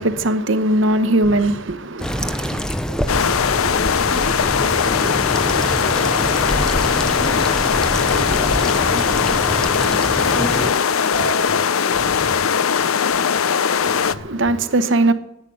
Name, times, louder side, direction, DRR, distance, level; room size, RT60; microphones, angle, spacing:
voice 1, 0.0-2.6 13.8-15.1, right 1 dB, 65° right, 0.9 m, -20 dB
sound 1, 2.0-10.7, equal, 5° left, 0.6 m, -25 dB
sound 2, 3.1-14.2, left 7 dB, 90° left, 0.6 m, -19 dB
voice 2, 3.4-3.8 4.1-4.3 4.8-6.9 7.2-7.6 8.3-9.3 10.4-11.5 11.8-12.0, equal, 55° left, 2.3 m, -32 dB
11.0 x 9.0 x 9.9 m
head